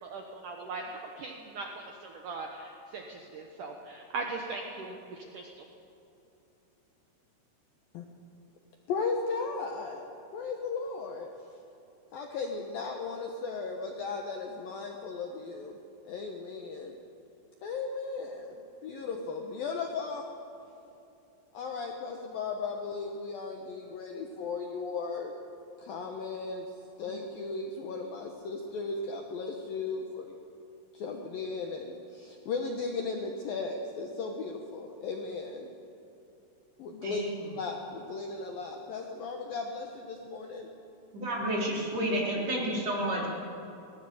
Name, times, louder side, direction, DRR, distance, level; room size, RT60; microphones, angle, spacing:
voice 1, 0.0-5.6, right 3 dB, 80° right, 2 dB, 1.8 m, -40 dB
voice 2, 8.9-10.0 10.3-11.3 12.1-15.8 16.0-17.0 17.6-20.3 21.5-25.3 25.8-26.7 27.0-30.4 30.9-35.7 36.8-37.2 37.6-40.7, left 4 dB, 70° left, 2 dB, 2.3 m, -36 dB
voice 3, 37.0-37.4 41.1-43.3, right 1 dB, 35° right, -3 dB, 4.6 m, -30 dB
22.0 x 18.0 x 7.8 m, 2.8 s
omnidirectional pair, 5.7 m